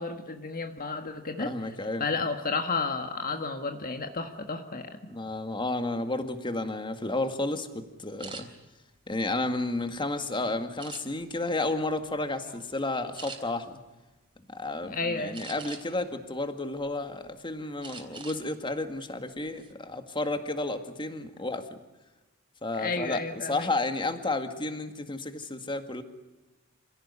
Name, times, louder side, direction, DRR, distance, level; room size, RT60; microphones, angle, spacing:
voice 1, 0.0-1.5 2.0-5.0 14.9-15.3 22.7-23.7, left 4 dB, 40° left, 6 dB, 1.6 m, -32 dB
voice 2, 1.4-2.0 5.1-8.5 9.1-13.8 14.5-21.7 22.6-26.0, left 2 dB, 20° left, 8 dB, 2.0 m, -32 dB
sound 1, 8.2-8.4 9.1-10.1 10.8-11.4 11.9-12.1 12.5-12.6 13.1-13.4 15.3-16.0 16.5-17.3 17.8-18.4 18.8-18.9 19.4-19.7, right 4 dB, 25° right, 3.9 m, -44 dB
27.5 x 17.0 x 9.8 m, 1.1 s
head